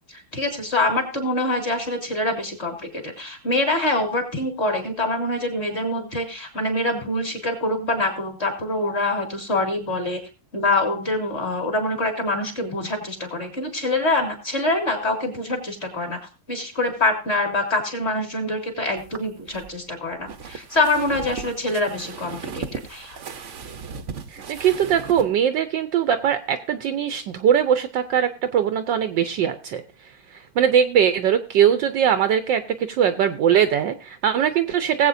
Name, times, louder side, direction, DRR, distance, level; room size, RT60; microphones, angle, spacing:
voice 1, 0.1-10.2 10.5-16.2 16.5-23.2, left 2 dB, 30° left, 4 dB, 2.5 m, -25 dB
sound 1, 19.0-25.3, right 6 dB, 50° right, 0.9 m, -37 dB
voice 2, 24.3-29.8 30.3-35.1, right 9 dB, 70° right, 10 dB, 1.2 m, -21 dB
19.0 x 8.0 x 2.6 m, 0.33 s
omnidirectional pair, 2.3 m